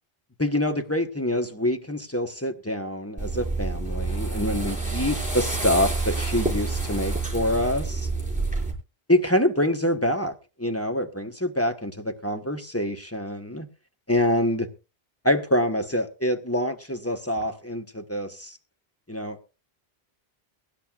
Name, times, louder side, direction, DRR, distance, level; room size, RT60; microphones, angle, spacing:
voice 1, 0.4-8.1 9.1-10.3 10.6-13.7 14.1-14.7 15.2-18.5 19.1-19.4, left 1 dB, 15° left, 1.0 m, -26 dB
sound 1, 3.2-8.7, right 3 dB, 5° right, 4.9 m, -28 dB
23.0 x 10.5 x 2.4 m
omnidirectional pair, 1.0 m